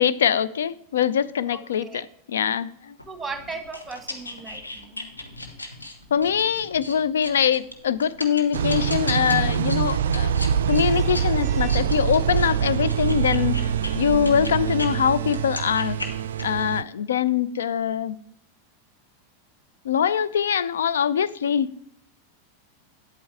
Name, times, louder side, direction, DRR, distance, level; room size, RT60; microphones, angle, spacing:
voice 1, 0.0-3.0 4.9-5.1 6.1-10.3 10.7-16.0 16.4-18.2 19.8-21.7, left 8 dB, 65° left, 0.4 m, -23 dB
voice 2, 1.5-2.0 3.1-5.0 10.7-11.1 11.4-11.8, right 4 dB, 10° right, 1.2 m, -38 dB
sound 1, 3.0-14.9 15.3-16.6, left 2 dB, 80° left, 1.1 m, -37 dB
sound 2, 8.5-16.8, right 8 dB, 60° right, 0.3 m, -24 dB
9.4 x 8.5 x 3.4 m
figure-of-eight pair, 90°, 0 cm